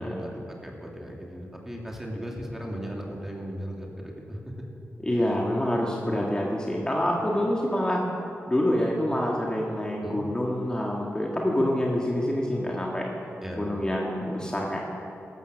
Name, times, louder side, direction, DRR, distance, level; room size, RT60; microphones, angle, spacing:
voice 1, 0.0-4.5 10.0-10.2 13.4-13.7, equal, 5° right, -1 dB, 2.6 m, -37 dB
voice 2, 5.0-8.0 8.5-13.0 13.6-14.8, left 1 dB, 15° left, -2 dB, 1.9 m, -26 dB
16.5 x 13.5 x 6.4 m, 2.7 s
wide cardioid pair, 95°, 5 cm